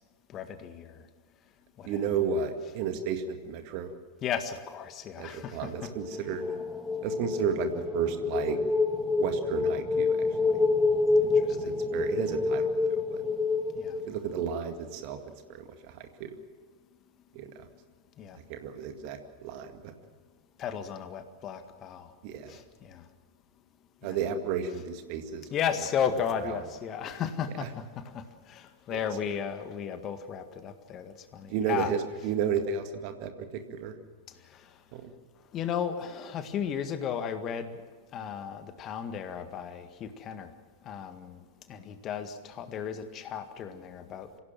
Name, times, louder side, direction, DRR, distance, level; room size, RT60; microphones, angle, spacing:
voice 1, 0.3-1.1 1.8-2.0 4.2-5.9 11.2-11.8 13.7-14.0 18.2-18.4 20.6-22.1 22.5-23.0 24.0-24.2 25.5-31.9 34.5-34.7 35.5-37.8 38.1-40.5 40.8-41.4 41.7-44.3, left 8 dB, 30° left, 9 dB, 1.8 m, -35 dB
voice 2, 1.8-3.9 5.2-6.5 7.0-8.6 9.2-10.5 11.5-13.2 14.1-15.2 15.5-16.4 17.3-17.7 18.5-19.9 22.2-22.6 24.0-25.5 31.5-33.9 34.9-35.1, right 7 dB, 45° right, 7 dB, 2.0 m, -33 dB
sound 1, 5.7-14.7, left 3 dB, 10° left, 1.7 m, -28 dB
26.0 x 17.0 x 7.6 m, 1.5 s
figure-of-eight pair, 90°, 0 cm